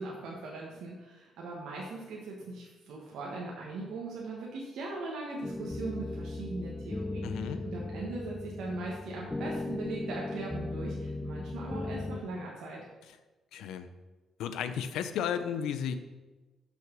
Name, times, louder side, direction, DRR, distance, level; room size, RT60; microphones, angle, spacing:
voice 1, 0.0-12.8, right 2 dB, 80° right, -3 dB, 1.4 m, -40 dB
sound 1, 5.4-12.2, left 2 dB, 15° left, 0.5 m, -37 dB
voice 2, 7.2-7.6 13.5-13.9 14.4-16.0, left 8 dB, 85° left, 10 dB, 0.6 m, -33 dB
6.0 x 5.9 x 6.0 m, 1.2 s
cardioid pair, 90°, 0 cm